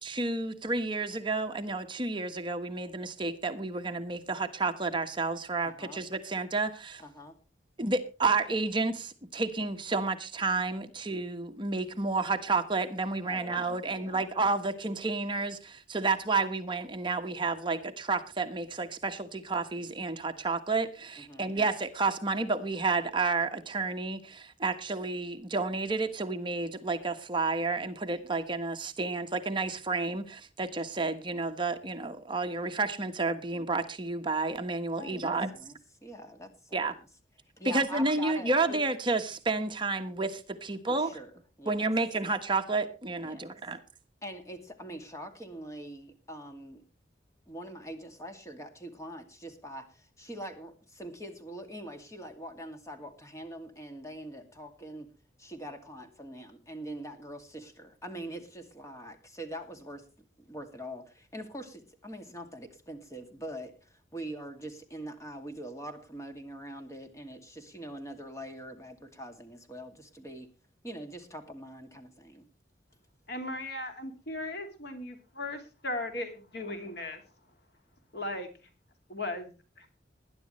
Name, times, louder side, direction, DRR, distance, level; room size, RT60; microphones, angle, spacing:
voice 1, 0.0-7.0 7.8-35.5 36.7-36.9 37.6-41.1 41.7-43.8, right 3 dB, 25° right, 6 dB, 1.3 m, -31 dB
voice 2, 5.6-6.0 7.0-7.4 13.3-14.3 21.2-21.5 35.0-37.1 37.6-38.8 40.9-41.3 41.6-41.8 43.2-43.5 44.2-46.8 47.5-55.1 55.4-60.0 60.4-70.5 70.8-72.5, equal, 15° left, 6 dB, 2.3 m, -43 dB
voice 3, 73.3-77.2 78.1-78.5 79.1-79.5 79.8-79.9, left 2 dB, 65° left, 6 dB, 2.7 m, -37 dB
20.5 x 11.0 x 3.1 m, 0.33 s
head